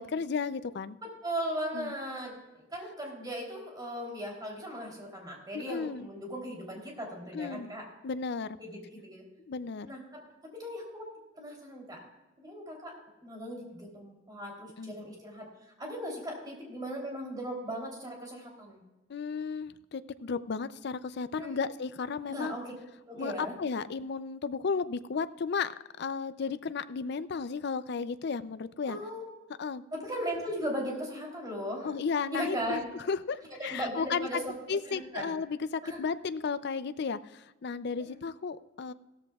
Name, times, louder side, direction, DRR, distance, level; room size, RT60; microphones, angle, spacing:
voice 1, 0.0-1.0 1.7-2.0 5.5-6.1 7.3-7.7 8.0-8.6 9.5-9.9 14.8-14.9 19.1-22.5 23.2-25.7 26.0-29.0 29.6-29.8 31.8-34.4 34.7-38.9, left 5 dB, 60° left, 13 dB, 0.5 m, -34 dB
voice 2, 1.0-7.8 8.6-9.2 9.8-10.2 10.5-11.1 11.4-12.0 12.4-12.9 13.2-15.5 15.8-18.8 21.4-21.6 22.3-22.7 23.1-23.5 28.8-29.2 29.9-31.9 32.3-32.8 33.6-34.5 34.9-35.3 35.8-36.0 38.0-38.3, equal, 20° right, -1 dB, 3.3 m, -37 dB
16.0 x 13.5 x 2.4 m, 1.1 s
head